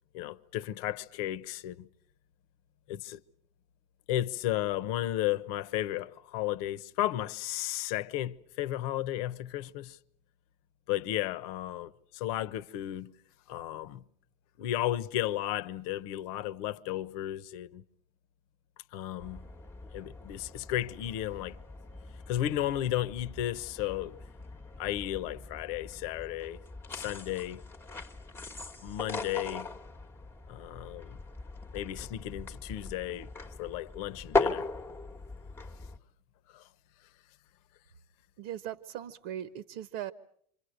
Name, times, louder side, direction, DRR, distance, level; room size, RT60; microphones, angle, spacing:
voice 1, 0.1-1.9 2.9-3.2 4.1-10.0 10.9-13.1 13.5-14.0 14.6-17.8 18.9-19.4 19.9-21.6 22.3-24.2 24.8-26.6 26.9-27.6 28.8-29.7 30.5-31.2 31.7-33.3 33.6-34.6 36.5-36.6, left 13 dB, 70° left, 1.1 m, -34 dB
sound 1, 19.2-36.0, left 3 dB, 10° left, 1.3 m, -39 dB
voice 2, 38.4-40.1, right 11 dB, 60° right, 1.2 m, -39 dB
28.5 x 26.0 x 6.6 m
supercardioid pair, 125°, 20 cm